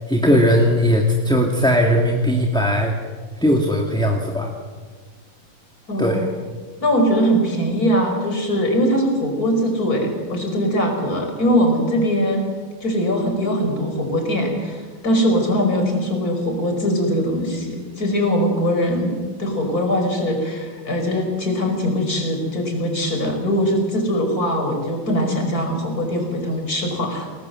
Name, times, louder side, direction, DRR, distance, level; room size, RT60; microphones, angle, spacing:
voice 1, 0.1-3.0 3.4-4.5 6.0-6.2, equal, ahead, 1 dB, 2.3 m, -18 dB
voice 2, 5.9-6.3 6.8-12.5 12.8-27.5, equal, 45° left, 4 dB, 5.6 m, -21 dB
28.5 x 21.0 x 7.9 m, 1.5 s
omnidirectional pair, 2.1 m